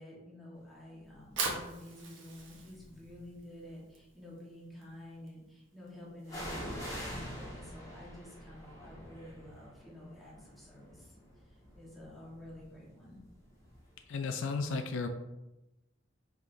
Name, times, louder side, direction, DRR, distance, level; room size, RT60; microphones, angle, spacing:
voice 1, 0.0-11.1 11.4-13.2, left 1 dB, ahead, -6 dB, 1.3 m, -50 dB
Fire, 1.1-7.3, right 4 dB, 75° right, 1.0 m, -43 dB
sound 1, 1.3-1.7 2.4-3.4 6.3-13.9 14.2-14.3, equal, 20° left, 1.2 m, -46 dB
voice 2, 14.1-15.1, left 4 dB, 70° left, 6 dB, 0.4 m, -34 dB
5.1 x 3.6 x 2.6 m, 0.98 s
head